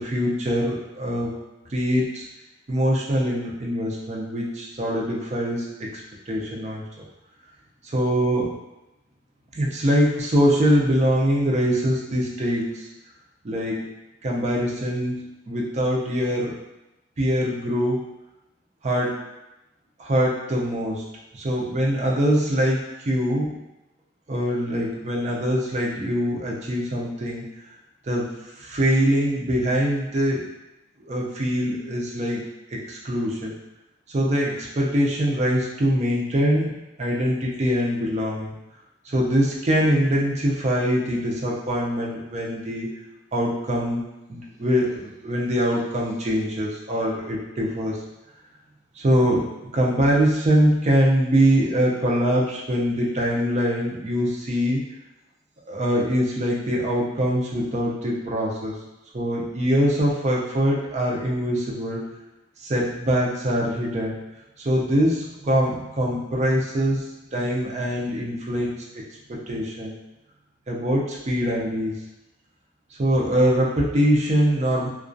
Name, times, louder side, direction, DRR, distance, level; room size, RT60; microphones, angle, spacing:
voice 1, 0.0-1.3 1.7-2.3 2.7-6.8 7.8-8.5 9.5-12.9 13.4-13.9 14.2-16.6 17.2-18.1 18.8-19.2 20.0-21.0 21.3-23.6 24.3-27.5 28.1-30.4 31.0-33.6 34.1-38.5 39.0-42.9 43.3-48.0 49.0-54.8 55.7-58.7 59.1-62.0 62.6-64.2 64.6-69.0 69.3-70.0 70.7-71.9 73.0-74.9, equal, 35° right, -3 dB, 0.5 m, -23 dB
2.3 x 2.2 x 2.5 m, 0.95 s
head